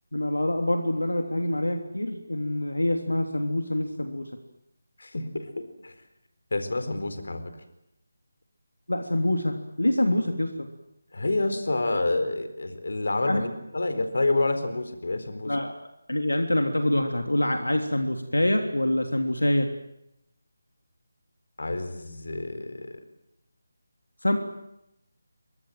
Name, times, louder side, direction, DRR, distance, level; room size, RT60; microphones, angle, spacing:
voice 1, 0.1-4.3 8.9-10.7 13.3-13.4 15.5-15.7 16.1-19.7 24.2-24.4, left 1 dB, 80° left, 5 dB, 3.3 m, -25 dB
voice 2, 5.0-5.9 6.5-7.5 11.1-15.6 21.6-23.0, left 2 dB, 60° left, 10 dB, 4.3 m, -28 dB
28.5 x 24.5 x 7.7 m, 0.82 s
figure-of-eight pair, 155°, 0 cm